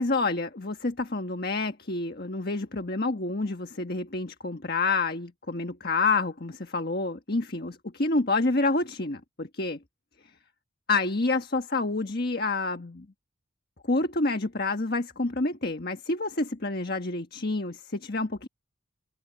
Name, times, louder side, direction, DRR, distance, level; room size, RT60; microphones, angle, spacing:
voice 1, 0.0-9.8 10.9-13.0 13.9-18.5, left 3 dB, 50° left, 1.4 m, -28 dB
head